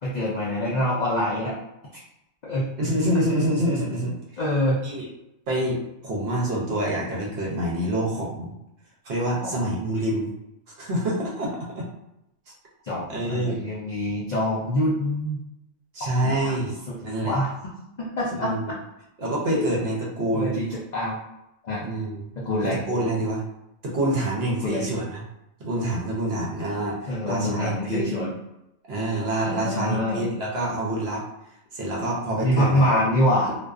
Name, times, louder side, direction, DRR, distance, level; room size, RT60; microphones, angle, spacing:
voice 1, 0.0-1.6 1.9-2.0 2.4-2.7 4.4-4.8 9.4-9.7 12.8-15.4 16.2-17.0 17.2-17.7 18.0-18.5 20.3-21.2 21.6-21.8 22.4-22.8 24.6-24.9 27.1-28.3 29.4-30.3 32.4-33.6, left 1 dB, 75° left, -5 dB, 0.4 m, -25 dB
voice 2, 2.8-4.2 4.8-5.1 5.5-8.5 9.0-10.3 10.8-11.9 13.1-13.6 15.9-16.8 17.0-17.4 18.4-18.7 19.2-20.6 21.8-22.3 22.9-23.4 23.8-25.2 25.6-28.0 28.9-31.3 31.7-33.0, right 1 dB, 60° right, -3 dB, 0.8 m, -26 dB
2.4 x 2.2 x 2.3 m, 0.88 s
omnidirectional pair, 1.3 m